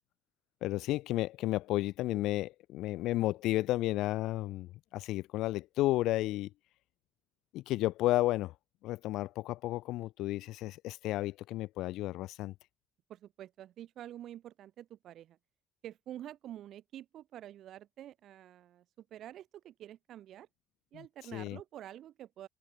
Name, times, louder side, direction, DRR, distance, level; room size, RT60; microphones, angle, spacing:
voice 1, 0.6-6.5 7.5-8.5 8.8-12.5 21.3-21.6, left 16 dB, 60° left, 0.4 m, -32 dB
voice 2, 13.1-15.4 15.8-20.5 20.9-22.5, right 12 dB, 55° right, 0.5 m, -48 dB
figure-of-eight pair, 45°, 0 cm